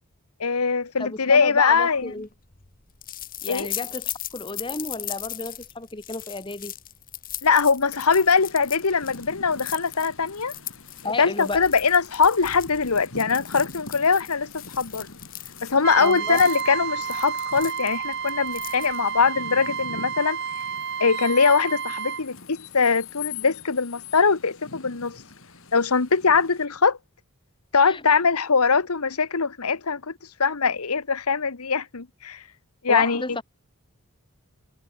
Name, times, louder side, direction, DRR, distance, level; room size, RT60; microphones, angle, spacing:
voice 1, 0.4-2.1 3.5-3.7 7.4-10.5 11.2-15.1 15.6-20.4 21.0-25.2 25.7-27.0 27.7-30.1 30.4-32.4 32.8-33.2, left 5 dB, 90° left, 1.3 m, -22 dB
voice 2, 1.0-2.3 3.4-6.7 11.0-11.6 16.0-16.4 27.8-28.0 32.9-33.4, left 3 dB, 20° left, 1.7 m, -32 dB
sound 1, 1.8-19.2, left 13 dB, 40° left, 2.3 m, -38 dB
sound 2, 7.9-26.7, left 5 dB, 65° left, 4.0 m, -44 dB
Trumpet, 15.8-22.2, right 7 dB, 50° right, 2.5 m, -31 dB
head